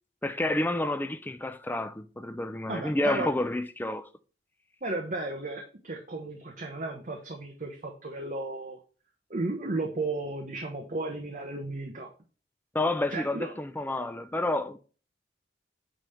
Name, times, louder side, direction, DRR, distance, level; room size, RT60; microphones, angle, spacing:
voice 1, 0.2-4.1 12.7-14.8, left 2 dB, 10° left, 0.5 m, -29 dB
voice 2, 2.7-3.3 4.8-8.8 9.3-12.1 13.1-13.6, right 2 dB, 45° right, 1.1 m, -34 dB
9.1 x 3.4 x 5.6 m
head